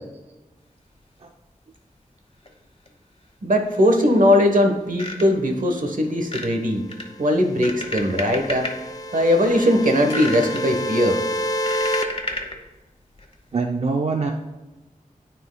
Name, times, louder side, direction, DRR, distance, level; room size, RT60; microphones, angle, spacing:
sound 1, 2.5-2.6 2.9-3.0 3.7-4.4 4.7-5.5 6.2-6.5 6.9-8.7 9.3-9.5 9.8-10.6 11.2-12.6 13.2-13.3, left 2 dB, 40° left, 1.1 m, -32 dB
voice 1, 3.4-6.8 7.2-8.7 9.1-11.2, left 1 dB, 70° right, 4 dB, 1.1 m, -19 dB
sound 2, 7.1-12.0, equal, 25° left, 0.7 m, -29 dB
voice 2, 13.5-14.3, right 4 dB, 50° right, 3 dB, 0.5 m, -23 dB
13.0 x 4.4 x 2.2 m, 1.1 s
wide cardioid pair, 75°, 14 cm